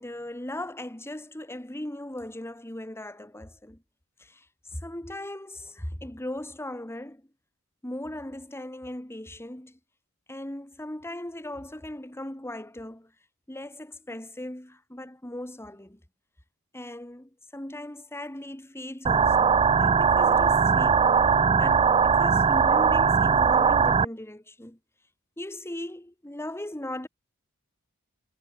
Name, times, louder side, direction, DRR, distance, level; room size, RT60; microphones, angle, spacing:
voice 1, 0.0-3.8 4.2-4.5 4.7-7.3 7.8-9.8 10.3-13.1 13.5-16.0 16.7-21.1 21.6-24.8 25.4-27.1, left 1 dB, 10° left, 2.0 m, -38 dB
sound 1, 19.0-24.0, right 6 dB, 25° right, 0.3 m, -20 dB
head